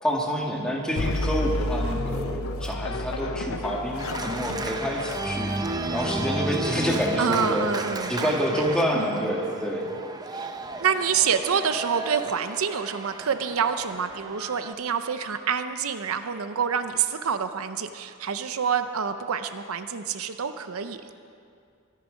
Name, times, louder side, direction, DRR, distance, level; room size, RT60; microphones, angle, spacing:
voice 1, 0.0-5.5 5.9-7.7 8.1-10.0, equal, 5° left, -2 dB, 2.1 m, -27 dB
sound 1, 1.0-6.4, left 1 dB, 70° left, 0.7 m, -31 dB
sound 2, 1.8-3.0 4.1-4.9 5.8-6.5 7.4-8.1, right 1 dB, 45° right, 3.8 m, -44 dB
Organ, 4.0-14.7, right 2 dB, 20° right, 0.7 m, -33 dB
voice 2, 7.2-8.6 8.9-9.3 10.3-10.5 10.8-21.0, right 7 dB, 80° right, 10 dB, 0.7 m, -27 dB
23.5 x 11.0 x 5.2 m, 2.4 s
head